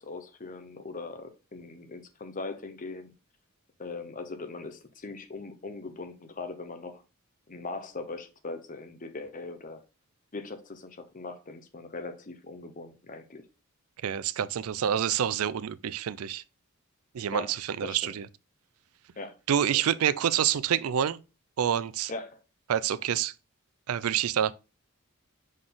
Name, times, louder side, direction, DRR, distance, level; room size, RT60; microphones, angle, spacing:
voice 1, 0.0-3.1 3.8-7.0 7.5-9.8 10.3-13.5 17.3-17.6 17.8-18.1 19.2-19.4 19.7-19.9 22.1-22.4, left 3 dB, 35° left, 0.8 m, -40 dB
voice 2, 14.0-16.4 17.1-18.3 19.5-21.2 21.6-22.1 22.7-23.3 23.9-24.5, right 9 dB, 85° right, 0.4 m, -27 dB
6.3 x 3.9 x 3.8 m
head